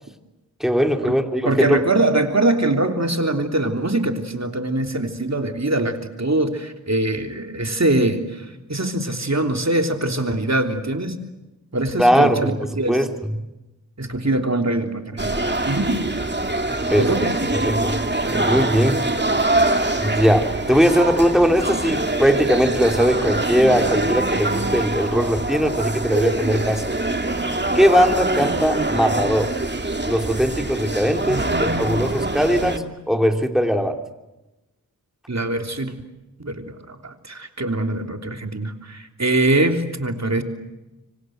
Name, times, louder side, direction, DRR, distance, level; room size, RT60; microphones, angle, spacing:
voice 1, 0.6-1.8 12.0-13.1 16.9-17.1 17.7-18.0 18.3-19.0 20.0-26.8 27.7-29.5 30.0-34.0, equal, ahead, 5 dB, 3.0 m, -19 dB
voice 2, 1.5-11.2 11.7-13.0 14.0-16.0 17.0-17.4 31.2-32.2 32.6-32.9 35.3-35.9 36.4-40.4, right 2 dB, 50° right, 5 dB, 3.3 m, -23 dB
sound 1, 15.2-32.8, right 2 dB, 30° right, 2.3 m, -24 dB
25.5 x 25.5 x 8.0 m, 1.0 s
wide cardioid pair, 45°, 35 cm